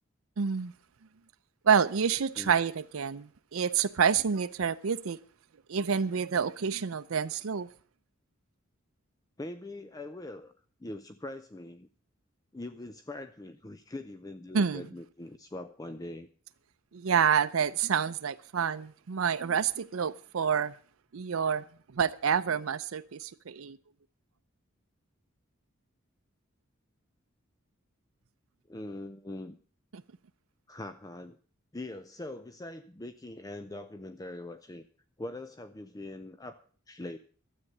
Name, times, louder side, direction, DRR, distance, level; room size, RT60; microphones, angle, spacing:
voice 1, 0.4-0.7 1.6-5.2 5.7-7.7 14.5-14.8 16.9-20.8 21.1-21.6 21.9-23.8, right 7 dB, 80° right, 0.5 m, -28 dB
voice 2, 9.4-10.5 10.8-11.9 12.5-16.3 28.7-29.6 30.7-31.4 31.7-34.9 35.2-36.6 36.9-37.2, left 2 dB, 20° left, 0.5 m, -42 dB
12.5 x 8.3 x 7.8 m
head